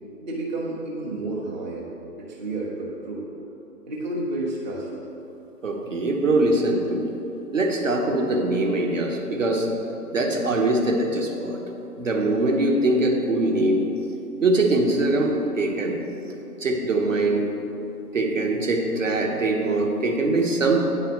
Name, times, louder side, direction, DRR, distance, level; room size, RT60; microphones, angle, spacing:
voice 1, 0.2-1.9 2.2-3.2 3.9-4.9, right 2 dB, 30° right, -5 dB, 0.8 m, -30 dB
voice 2, 5.6-7.1 7.5-9.7 10.1-11.6 12.0-13.8 14.4-16.0 16.6-17.5 18.1-20.8, right 2 dB, 55° right, 2 dB, 1.0 m, -22 dB
9.5 x 4.1 x 5.3 m, 2.9 s
figure-of-eight pair, 140°, 47 cm